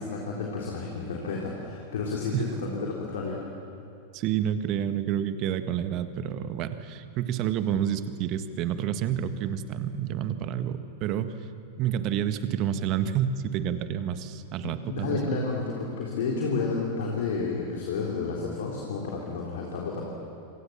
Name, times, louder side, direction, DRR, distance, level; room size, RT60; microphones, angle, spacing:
voice 1, 0.0-3.4 14.6-20.1, left 4 dB, 60° left, -2 dB, 3.8 m, -31 dB
voice 2, 4.1-11.3 11.8-15.4, right 9 dB, 40° right, 10 dB, 1.6 m, -29 dB
27.0 x 26.5 x 7.3 m, 2.6 s
figure-of-eight pair, 90°, 0 cm